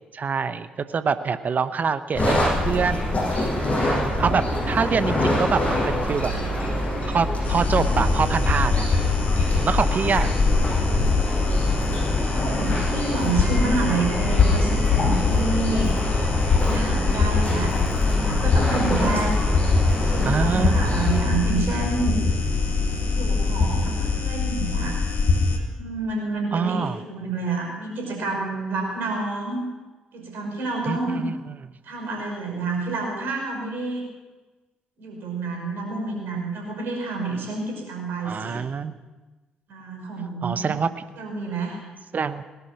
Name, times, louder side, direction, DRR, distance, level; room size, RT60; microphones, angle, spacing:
voice 1, 0.1-3.0 3.3-3.5 3.7-6.3 7.1-9.0 9.4-10.3 20.2-20.8 26.5-27.0 30.9-31.5 38.2-38.9 40.4-40.9 42.1-42.4, right 5 dB, 45° right, 12 dB, 0.9 m, -25 dB
sound 1, 2.1-21.2, left 1 dB, 35° left, 7.5 m, -25 dB
sound 2, 7.4-25.6, left 4 dB, 55° left, 2.1 m, -23 dB
voice 2, 12.2-15.9 16.6-17.7 18.0-19.4 20.0-22.3 23.1-25.0 25.8-29.6 30.1-31.2 31.8-34.1 35.0-38.6 39.7-40.7 41.2-41.8, right 3 dB, 65° right, 0 dB, 5.5 m, -29 dB
sound 3, 17.5-24.2, equal, 10° right, 4.5 m, -32 dB
19.0 x 11.0 x 6.1 m, 1.2 s
figure-of-eight pair, 40°, 4 cm